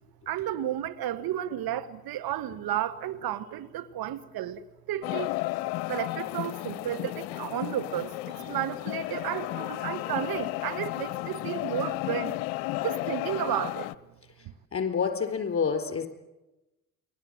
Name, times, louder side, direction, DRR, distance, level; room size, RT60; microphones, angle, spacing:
voice 1, 0.3-5.3 5.9-12.4 12.8-13.9, right 12 dB, 50° right, 1.4 m, -32 dB
sound 1, 5.0-13.9, left 18 dB, 60° left, 0.9 m, -33 dB
voice 2, 14.4-16.1, left 6 dB, 30° left, 4.4 m, -29 dB
29.5 x 22.0 x 7.7 m
figure-of-eight pair, 50°, 46 cm